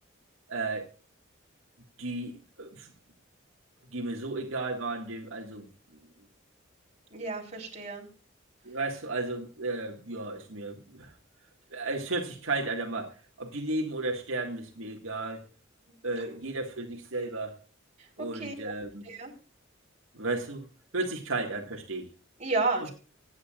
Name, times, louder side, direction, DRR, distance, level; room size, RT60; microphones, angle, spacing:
voice 1, 0.5-0.9 2.0-2.9 3.9-5.7 8.6-11.1 11.7-15.4 16.0-17.5 18.2-19.0 20.1-20.7 20.9-22.1 22.8-22.9, right 2 dB, 80° right, 1 dB, 2.0 m, -34 dB
voice 2, 7.1-8.0 18.2-18.5 19.0-19.3 22.4-22.9, right 3 dB, 35° right, -1 dB, 4.1 m, -31 dB
24.0 x 9.7 x 2.5 m, 0.34 s
head